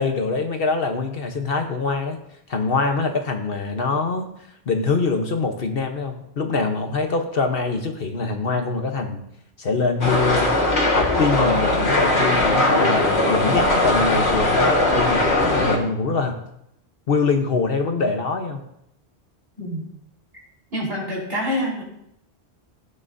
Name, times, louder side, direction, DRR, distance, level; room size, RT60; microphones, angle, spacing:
voice 1, 0.0-2.2 2.5-4.3 4.7-9.2 9.6-10.5 10.9-16.4 17.1-18.6, left 4 dB, 60° left, 5 dB, 1.2 m, -24 dB
sound 1, 10.0-15.8, left 1 dB, 80° left, 2.0 m, -19 dB
voice 2, 19.6-19.9 20.7-21.8, equal, 65° right, -4 dB, 4.5 m, -26 dB
16.0 x 9.1 x 2.7 m, 0.76 s
omnidirectional pair, 1.1 m